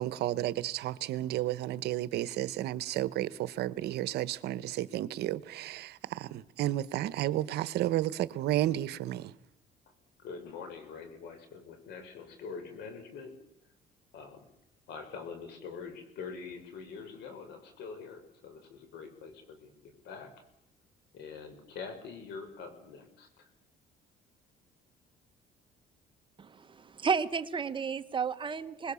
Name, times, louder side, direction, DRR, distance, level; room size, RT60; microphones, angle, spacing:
voice 1, 0.0-9.3, right 14 dB, 75° right, 1.0 m, -32 dB
voice 2, 10.2-13.3 14.1-14.5 14.9-20.3 21.1-23.5, left 5 dB, 80° left, 5.4 m, -44 dB
voice 3, 26.4-28.9, right 6 dB, 30° right, 1.1 m, -32 dB
25.5 x 20.5 x 7.1 m
cardioid pair, 110°, 17 cm